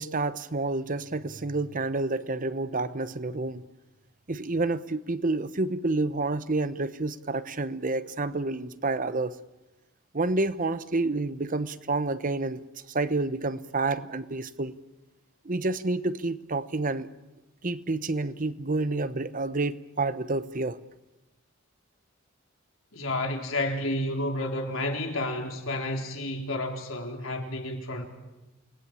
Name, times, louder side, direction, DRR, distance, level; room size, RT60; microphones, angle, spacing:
voice 1, 0.0-3.6 4.3-9.3 10.1-12.6 12.9-14.7 15.4-17.1 17.6-20.8, right 2 dB, 40° right, 1.0 m, -29 dB
voice 2, 22.9-28.1, left 1 dB, 75° left, 4.0 m, -31 dB
29.0 x 19.5 x 8.9 m
head